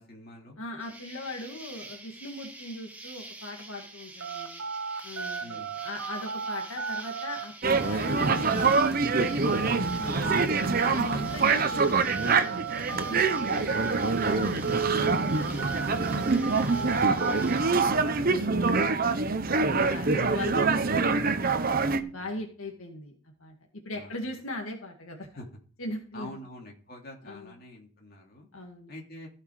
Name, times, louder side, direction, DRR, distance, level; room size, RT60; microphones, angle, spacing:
voice 1, 0.0-0.6 5.4-5.7 14.5-15.2 18.2-18.5 21.7-22.4 23.9-24.2 25.3-25.5 26.1-28.5 28.9-29.3, left 1 dB, 45° left, 0 dB, 2.8 m, -46 dB
voice 2, 0.6-4.6 5.0-8.6 9.1-13.8 14.2-17.4 17.9-21.3 22.0-25.3 25.8-26.4 27.2-27.5 28.5-28.9, left 1 dB, 80° left, 2 dB, 2.0 m, -40 dB
Insect, 0.8-17.9, right 2 dB, 5° right, 1.4 m, -47 dB
sound 1, 4.2-14.3 14.6-17.9, right 5 dB, 80° right, 1.7 m, -35 dB
sound 2, 7.6-22.0, right 4 dB, 45° right, 0.8 m, -25 dB
15.0 x 5.9 x 4.8 m, 0.42 s
head